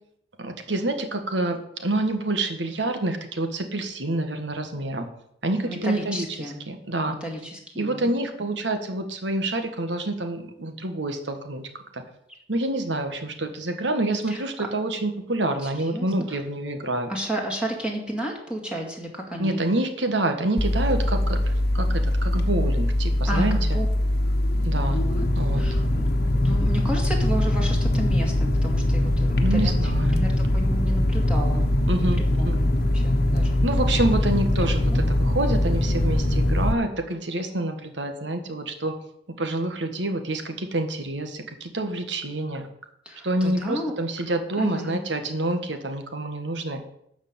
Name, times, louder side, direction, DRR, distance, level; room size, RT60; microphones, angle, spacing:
voice 1, 0.4-5.1 5.4-6.2 6.7-7.1 7.8-11.6 11.9-12.0 12.5-17.1 19.4-23.8 24.6-25.0 25.3-25.6 29.4-30.2 31.9-32.6 33.6-38.9 39.4-42.7 43.2-46.8, right 2 dB, 75° right, 6 dB, 1.6 m, -27 dB
voice 2, 5.6-6.6 7.1-8.1 14.3-14.7 15.6-16.4 17.1-19.6 23.3-23.9 24.8-25.3 25.6-26.0 26.4-31.7 31.9-32.1 32.4-33.6 34.9-35.0 43.1-43.9 44.6-45.0, equal, 5° right, -1 dB, 2.1 m, -32 dB
sound 1, 20.6-36.7, left 1 dB, 60° left, 1.1 m, -22 dB
12.5 x 5.2 x 8.6 m, 0.74 s
head